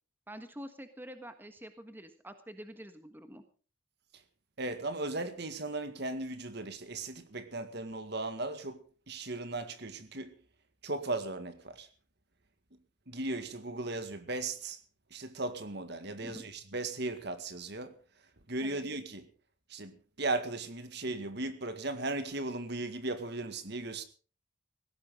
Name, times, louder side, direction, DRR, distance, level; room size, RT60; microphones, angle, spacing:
voice 1, 0.3-3.4 16.2-16.4 18.6-18.8, equal, 10° right, 1.4 m, -47 dB
voice 2, 4.6-10.3 10.8-11.9 13.1-14.8 15.1-18.0 18.5-19.3 19.7-24.0, right 2 dB, 55° right, 2.0 m, -37 dB
19.0 x 16.5 x 3.8 m
head